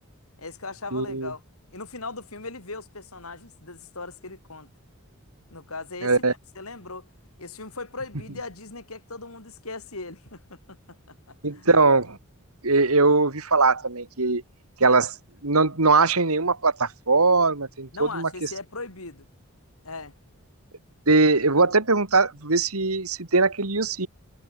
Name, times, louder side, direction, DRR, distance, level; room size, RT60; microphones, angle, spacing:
voice 1, 0.4-1.4 1.7-4.7 5.5-6.1 6.5-7.1 7.4-10.8 11.1-11.7 17.9-19.3 19.8-20.1, left 3 dB, 75° left, 4.7 m, -38 dB
voice 2, 0.9-1.3 6.0-6.3 11.4-12.2 12.6-14.4 14.8-15.1 15.4-18.5 21.1-24.1, right 3 dB, 80° right, 2.5 m, -21 dB
head